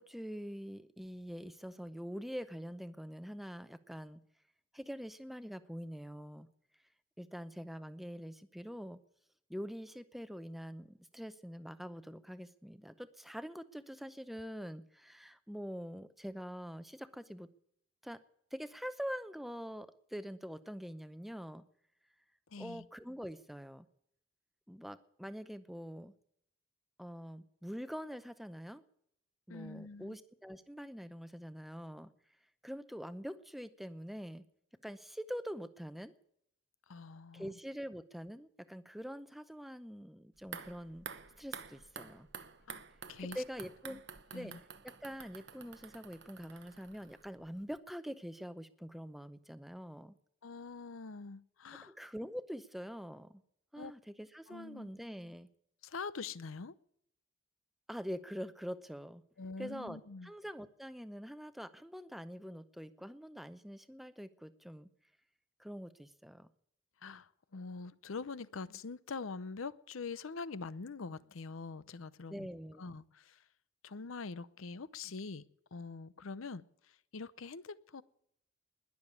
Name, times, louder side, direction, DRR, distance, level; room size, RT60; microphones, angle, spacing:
voice 1, 0.0-4.2 4.7-6.5 7.2-9.0 9.5-17.5 18.0-18.2 18.5-21.6 22.6-23.9 24.7-26.1 27.0-28.8 29.5-32.1 32.6-34.4 34.8-36.1 37.3-41.1 41.4-42.3 43.2-44.0 44.3-44.5 44.8-50.1 51.8-53.4 53.7-55.5 57.9-59.2 59.6-64.9 65.6-66.5 72.3-72.8, equal, ahead, 0.6 m, -45 dB
voice 2, 22.5-22.9 29.5-30.2 36.9-37.5 42.7-43.4 43.9-44.0 44.3-44.6 50.4-51.9 53.8-53.9 54.5-54.9 55.8-56.7 59.4-60.3 67.0-72.5 72.8-73.4 73.8-75.4 75.7-78.0, left 4 dB, 80° left, 0.7 m, -44 dB
sound 1, 40.4-47.5 47.8-47.9, right 6 dB, 55° right, 0.9 m, -50 dB
20.5 x 7.1 x 9.6 m
head